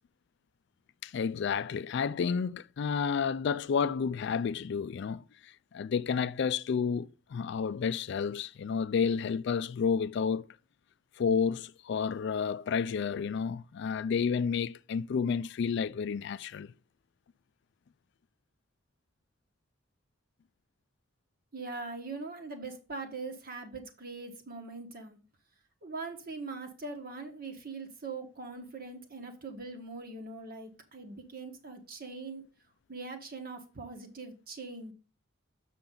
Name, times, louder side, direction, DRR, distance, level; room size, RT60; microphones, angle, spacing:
voice 1, 1.0-10.5 11.2-16.7, left 6 dB, 60° left, 0.3 m, -31 dB
voice 2, 21.5-25.2 25.8-32.4 32.9-34.9, right 3 dB, 45° right, 1.4 m, -42 dB
7.1 x 5.9 x 3.8 m
head